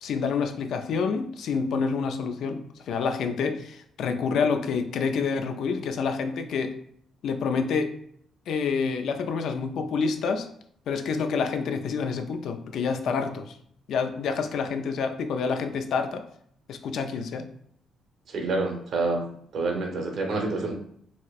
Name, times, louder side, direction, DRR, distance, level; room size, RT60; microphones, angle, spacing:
voice 1, 0.0-2.6 2.9-6.8 7.2-7.9 8.5-10.5 10.9-13.6 13.9-16.2 16.7-17.5, left 5 dB, 75° left, 7 dB, 0.3 m, -28 dB
voice 2, 18.3-19.2 19.5-20.7, right 3 dB, 65° right, 2 dB, 0.8 m, -27 dB
4.1 x 2.0 x 2.4 m, 0.66 s
cardioid pair, 90°, 0 cm